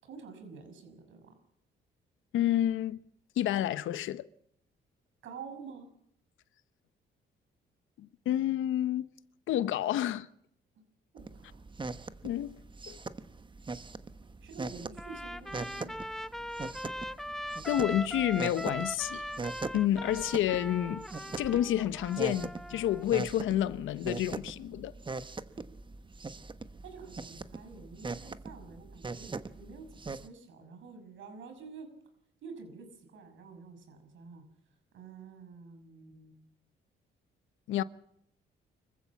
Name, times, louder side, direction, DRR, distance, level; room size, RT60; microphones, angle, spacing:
voice 1, 0.0-1.3 5.2-5.9 11.1-11.6 14.4-16.0 26.8-31.9 32.4-34.4 34.9-36.4, right 5 dB, 75° right, 6.1 m, -48 dB
voice 2, 2.3-3.0 3.4-4.3 8.0-9.1 9.5-10.3 12.2-12.6 12.9-13.0 17.6-19.3 19.7-21.1 21.4-24.9 37.7-37.8, left 12 dB, 80° left, 0.9 m, -29 dB
sound 1, 11.2-30.3, right 3 dB, 25° right, 1.2 m, -41 dB
Trumpet, 15.0-23.1, equal, ahead, 0.8 m, -40 dB
25.0 x 15.0 x 7.3 m
cardioid pair, 90°, 20 cm